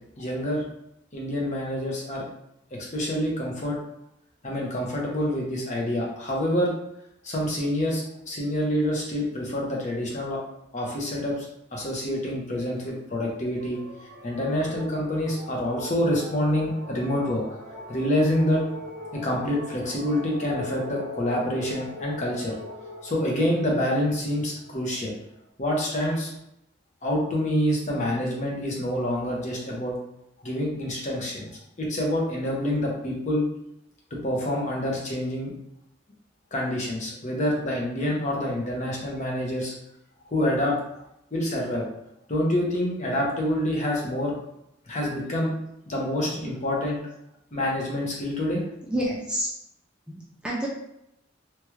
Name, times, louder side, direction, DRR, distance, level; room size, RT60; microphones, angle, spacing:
voice 1, 0.2-0.6 1.1-2.2 2.7-3.8 4.4-6.7 7.2-10.4 10.7-13.8 14.2-17.4 17.9-18.6 19.1-22.5 23.0-25.1 25.6-26.3 27.0-29.9 30.4-31.5 31.8-33.5 34.1-35.5 36.5-39.7 40.3-40.7 41.3-41.9 42.3-44.3 44.9-45.5 45.9-47.0 47.5-48.6, left 1 dB, 40° left, -2 dB, 0.7 m, -27 dB
sound 1, 13.6-25.4, left 1 dB, 60° right, 0.8 m, -40 dB
voice 2, 46.2-46.8 48.9-49.5 50.1-50.7, equal, 5° right, -5 dB, 0.3 m, -30 dB
3.0 x 2.3 x 3.1 m, 0.81 s
head